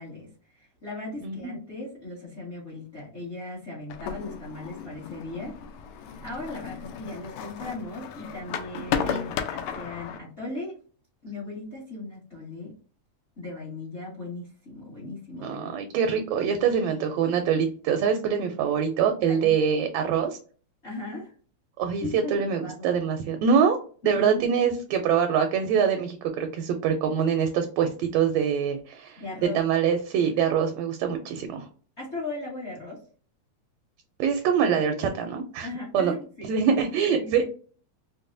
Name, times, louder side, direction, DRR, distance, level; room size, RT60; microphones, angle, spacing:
voice 1, 0.0-5.5 6.2-10.8 11.2-12.7 13.4-15.7 19.3-19.5 20.8-21.3 22.0-22.9 24.0-24.4 29.2-29.6 32.0-33.0 35.6-36.5 37.1-37.4, left 2 dB, 50° left, -6 dB, 0.8 m, -37 dB
voice 2, 1.2-1.5 9.1-9.2 15.4-20.4 21.8-23.8 24.0-29.2 29.5-31.7 34.2-35.7 35.9-36.1 36.5-37.5, right 7 dB, 80° right, 5 dB, 1.6 m, -24 dB
sound 1, 3.9-10.2, left 8 dB, 80° left, 1.9 m, -34 dB
5.2 x 2.1 x 2.5 m, 0.41 s
omnidirectional pair, 3.3 m